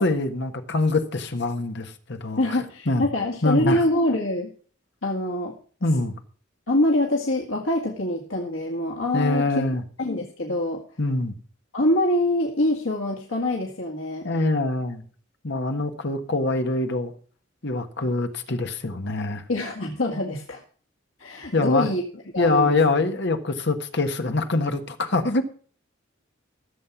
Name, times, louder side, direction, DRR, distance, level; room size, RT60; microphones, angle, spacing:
voice 1, 0.0-2.6 2.9-3.1 3.4-3.8 5.8-6.1 9.1-9.8 11.0-11.3 14.2-15.0 15.4-17.1 17.6-19.4 21.5-21.9 22.4-25.4, left 2 dB, 60° left, 1.5 m, -24 dB
voice 2, 2.4-4.5 5.0-5.6 6.7-9.4 10.0-10.8 11.7-14.3 19.5-20.6 21.2-22.0 22.3-22.7, left 1 dB, 90° left, 2.0 m, -24 dB
15.0 x 7.5 x 6.0 m
head